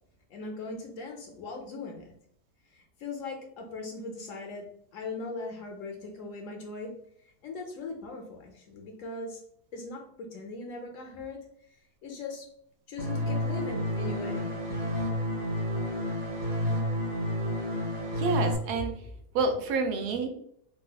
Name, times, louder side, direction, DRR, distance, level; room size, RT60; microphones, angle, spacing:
voice 1, 0.3-2.1 2.7-6.9 7.4-9.4 9.7-11.5 12.0-12.5 12.9-14.5, left 3 dB, 65° left, 2 dB, 0.9 m, -39 dB
sound 1, 13.0-18.5, equal, 50° right, 0.9 m, -30 dB
voice 2, 18.2-19.1 19.3-20.3, right 3 dB, 85° right, 5 dB, 1.1 m, -28 dB
3.8 x 2.4 x 2.3 m, 0.68 s
omnidirectional pair, 1.7 m